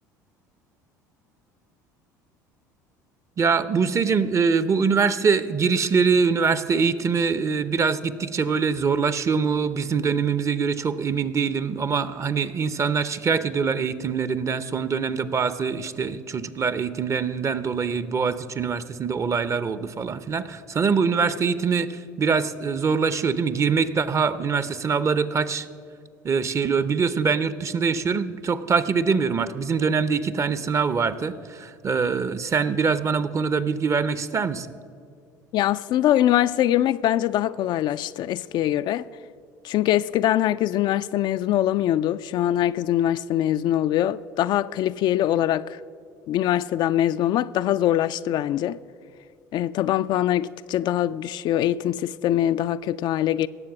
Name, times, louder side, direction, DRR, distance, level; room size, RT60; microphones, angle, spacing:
voice 1, 3.4-25.7 26.2-34.7, right 5 dB, 30° right, 0.7 m, -23 dB
voice 2, 35.5-39.1 39.6-45.8 46.3-48.8 49.5-53.5, left 12 dB, 50° left, 0.3 m, -23 dB
17.5 x 7.3 x 6.0 m
hypercardioid pair, 70°, 9 cm